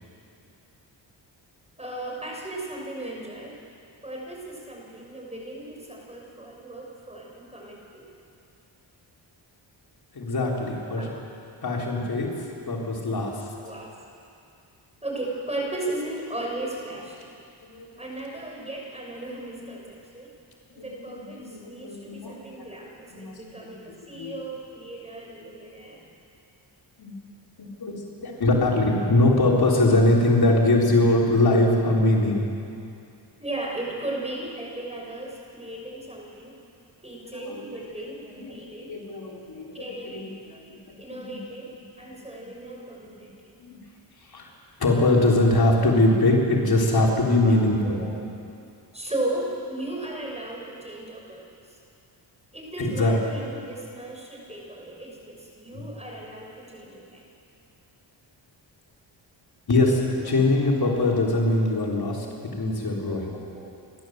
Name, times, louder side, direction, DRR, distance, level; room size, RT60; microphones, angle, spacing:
voice 1, 1.8-3.5 4.0-8.1 11.0-11.1 13.6-13.9 15.0-17.3 18.0-20.3 20.7-26.0 33.4-36.6 37.0-39.0 39.7-40.2 41.0-41.7 42.0-43.5 47.4-47.6 47.8-48.2 48.9-51.8 52.5-57.3 60.2-60.3 60.8-61.1 63.1-63.7, right 1 dB, 15° right, -1 dB, 6.2 m, -36 dB
voice 2, 10.1-11.1 11.6-12.3 12.7-13.4 17.6-18.0 20.9-22.4 23.1-23.6 23.9-24.3 27.0-27.1 27.8-32.4 37.3-37.6 38.4-38.5 38.8-40.8 41.1-41.4 43.6-43.8 44.3-44.5 44.8-48.0 52.8-53.2 55.7-55.9 59.7-62.3 62.5-63.3, left 2 dB, 55° left, -2 dB, 3.6 m, -22 dB
29.5 x 12.5 x 7.8 m, 2.5 s
cardioid pair, 75°, 45 cm